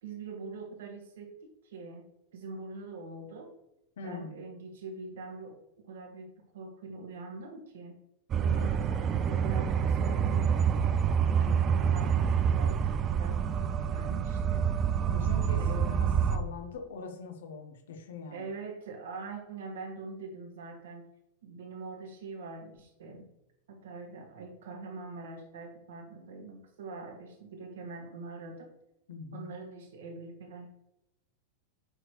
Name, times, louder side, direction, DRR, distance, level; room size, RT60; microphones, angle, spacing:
voice 1, 0.0-3.5 4.0-5.6 5.8-8.0 8.4-10.6 11.3-14.7 15.6-16.0 18.3-21.1 21.4-23.3 23.7-28.7 29.3-30.7, right 3 dB, 60° right, 2 dB, 2.0 m, -43 dB
voice 2, 4.0-4.4 15.1-15.6 15.9-18.5 29.1-29.4, left 4 dB, 60° left, 5 dB, 1.3 m, -42 dB
sound 1, 8.3-16.4, right 7 dB, 30° right, 0.6 m, -27 dB
8.7 x 6.1 x 3.3 m, 0.86 s
figure-of-eight pair, 90°, 0 cm